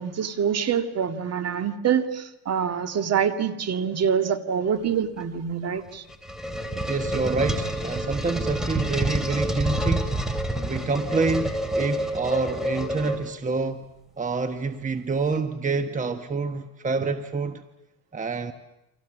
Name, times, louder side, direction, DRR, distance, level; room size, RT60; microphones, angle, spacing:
voice 1, 0.0-6.0, right 7 dB, 50° right, 2.3 m, -25 dB
sound 1, 5.9-13.6, right 1 dB, ahead, 3.4 m, -28 dB
voice 2, 6.9-10.1 10.6-13.9 14.2-17.6 18.1-18.5, right 4 dB, 25° right, 1.2 m, -27 dB
29.5 x 25.0 x 7.5 m
cardioid pair, 110°, 33 cm